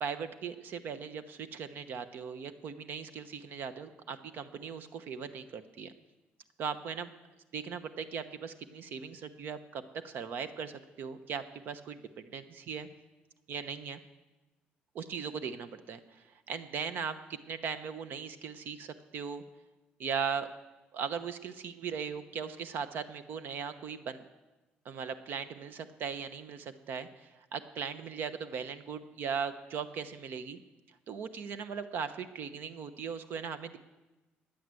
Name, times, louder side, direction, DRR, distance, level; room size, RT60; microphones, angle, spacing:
voice 1, 0.0-5.9 6.6-7.1 7.5-12.9 13.5-14.0 14.9-19.4 20.0-20.5 20.9-24.2 24.8-30.6 31.1-33.8, right 6 dB, 55° right, 11 dB, 1.0 m, -38 dB
17.5 x 10.0 x 7.7 m, 1.1 s
cardioid pair, 145°, 4 cm